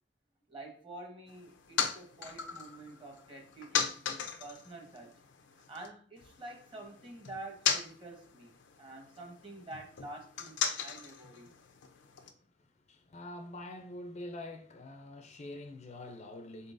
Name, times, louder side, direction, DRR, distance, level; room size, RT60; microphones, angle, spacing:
voice 1, 0.5-11.5, right 2 dB, 30° right, 1.0 m, -48 dB
sound 1, 1.3-5.9 6.2-12.3, left 7 dB, 90° left, 0.5 m, -38 dB
voice 2, 12.0-16.7, left 1 dB, 40° left, 0.4 m, -46 dB
4.0 x 3.8 x 2.5 m
head